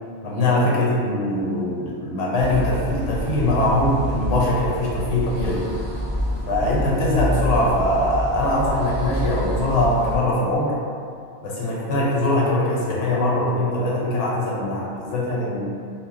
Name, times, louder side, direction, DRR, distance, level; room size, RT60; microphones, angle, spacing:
voice 1, 0.2-5.6 6.5-10.8 11.4-15.7, left 1 dB, 80° left, -5 dB, 1.0 m, -22 dB
sound 1, 2.4-10.2, equal, 25° left, 0.4 m, -28 dB
2.0 x 2.0 x 3.6 m, 2.3 s
omnidirectional pair, 1.3 m